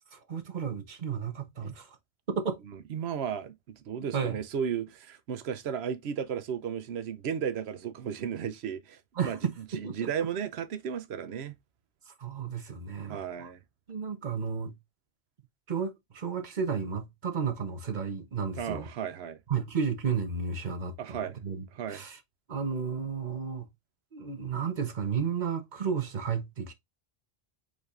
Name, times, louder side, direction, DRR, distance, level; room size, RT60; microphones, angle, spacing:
voice 1, 0.1-1.9 2.3-2.6 4.1-4.4 9.2-9.5 9.8-10.1 12.2-13.5 13.9-14.7 15.7-18.9 19.5-21.6 21.9-22.2 22.5-23.7 24.1-26.7, right 6 dB, 50° right, 1.0 m, -32 dB
voice 2, 2.7-9.4 9.7-11.5 13.1-13.6 18.6-19.4 21.0-21.4 21.7-22.0, right 8 dB, 85° right, 0.9 m, -34 dB
4.9 x 4.1 x 2.4 m
omnidirectional pair, 1.1 m